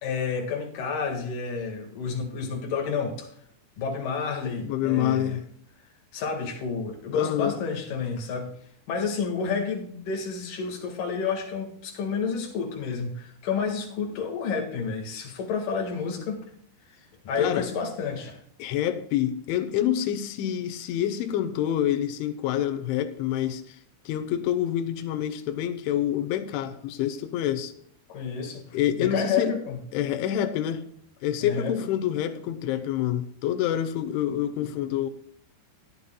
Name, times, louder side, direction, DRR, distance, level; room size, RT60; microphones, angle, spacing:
voice 1, 0.0-3.3 3.8-5.4 6.1-8.5 8.9-16.4 17.2-18.4 28.1-29.8 31.4-31.7, left 5 dB, 55° left, 2.8 m, -30 dB
voice 2, 4.6-5.5 7.1-7.5 17.4-17.7 18.6-23.8 24.1-27.7 28.7-29.5 29.9-30.9 31.2-35.1, left 11 dB, 80° left, 3.2 m, -27 dB
18.0 x 10.0 x 2.2 m
omnidirectional pair, 5.4 m